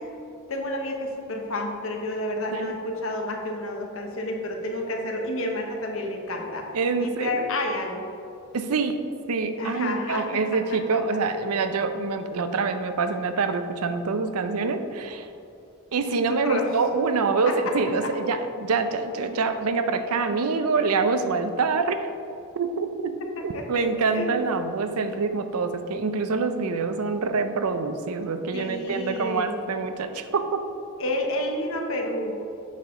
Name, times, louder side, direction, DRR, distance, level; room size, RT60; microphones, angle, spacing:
voice 1, 0.5-6.7 7.0-8.0 9.6-10.4 16.4-16.7 17.4-17.5 18.0-18.1 23.4-24.4 28.5-29.6 31.0-32.4, left 1 dB, 65° left, 2 dB, 1.0 m, -30 dB
voice 2, 6.7-7.5 8.5-15.3 15.9-22.1 22.6-23.1 23.4-30.6, right 4 dB, 85° right, 9 dB, 0.6 m, -26 dB
7.3 x 5.9 x 3.7 m, 2.7 s
head